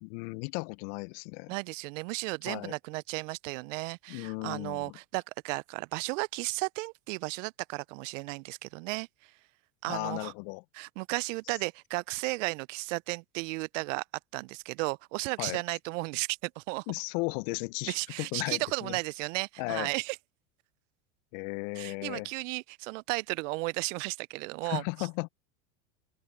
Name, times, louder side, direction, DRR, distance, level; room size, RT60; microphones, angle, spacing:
voice 1, 0.0-1.5 2.4-2.7 4.1-4.9 9.9-10.6 15.4-15.6 16.9-19.0 19.6-19.9 21.3-22.3 24.6-25.3, left 31 dB, 55° left, 1.1 m, -35 dB
voice 2, 1.5-9.3 9.8-10.3 10.7-14.0 14.3-16.8 17.9-20.2 21.7-24.8, right 26 dB, 60° right, 0.8 m, -34 dB
open air
hypercardioid pair, 90°, 43 cm